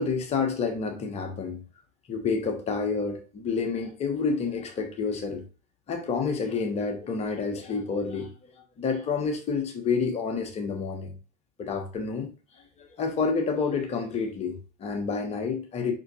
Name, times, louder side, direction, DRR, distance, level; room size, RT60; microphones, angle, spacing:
voice 1, 0.0-1.6 2.1-5.4 5.9-11.1 11.6-12.3 12.6-15.9, left 5 dB, 35° left, 1.4 m, -29 dB
6.6 x 5.6 x 2.6 m
figure-of-eight pair, 70°, 20 cm